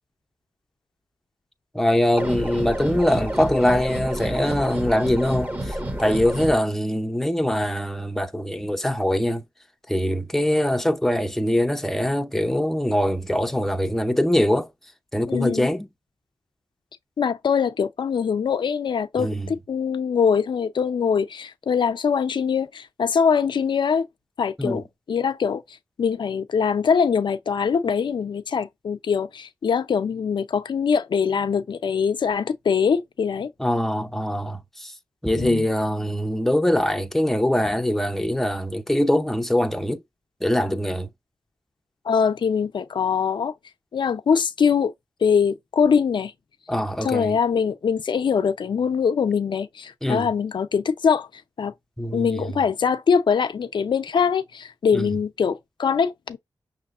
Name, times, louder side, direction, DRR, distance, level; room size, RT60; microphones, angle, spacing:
voice 1, 1.7-9.4 9.9-14.7 15.1-15.9 19.2-19.5 24.6-24.8 33.6-34.9 35.2-40.0 40.4-41.1 46.7-47.4 50.0-50.3 52.0-52.5 54.9-55.1, left 1 dB, 5° left, 0.6 m, -23 dB
sound 1, 2.2-6.5, right 1 dB, 20° right, 1.0 m, -29 dB
voice 2, 15.3-15.7 17.2-24.1 24.4-25.6 26.0-33.5 35.4-35.7 42.0-43.5 43.9-44.9 45.2-46.3 47.0-51.3 51.6-51.7 52.1-56.4, left 6 dB, 70° left, 0.6 m, -23 dB
5.8 x 3.1 x 2.5 m
cardioid pair, 55°, 8 cm